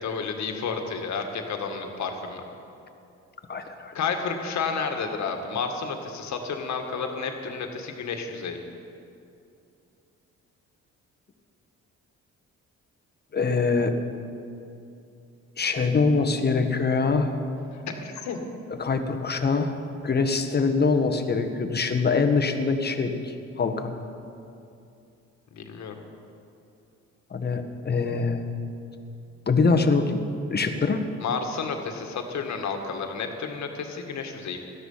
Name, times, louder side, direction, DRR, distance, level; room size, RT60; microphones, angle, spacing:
voice 1, 0.0-2.4 3.9-8.6 17.9-18.4 25.5-25.9 31.2-34.6, left 5 dB, 65° left, 4 dB, 1.9 m, -31 dB
voice 2, 3.5-3.9 13.3-13.9 15.6-17.4 18.8-19.7 20.0-23.9 27.3-28.4 29.5-30.2 30.5-31.0, left 4 dB, 35° left, 6 dB, 1.4 m, -24 dB
17.5 x 12.5 x 5.7 m, 2.7 s
cardioid pair, 90°, 30 cm